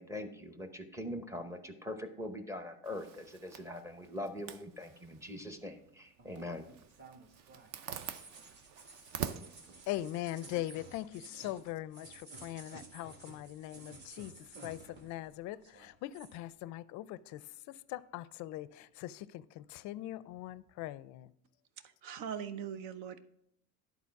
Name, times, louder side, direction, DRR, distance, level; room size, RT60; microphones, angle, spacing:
voice 1, 0.0-6.7, left 1 dB, 10° right, 0.7 m, -42 dB
Zipper (clothing), 2.8-11.0, right 8 dB, 50° right, 0.6 m, -47 dB
sound 1, 6.2-15.3 15.5-16.4, right 3 dB, 30° right, 1.2 m, -54 dB
voice 2, 9.9-21.3, left 14 dB, 50° left, 0.4 m, -41 dB
voice 3, 21.8-23.2, right 8 dB, 70° right, 0.9 m, -41 dB
11.0 x 4.1 x 5.8 m
cardioid pair, 140°, 37 cm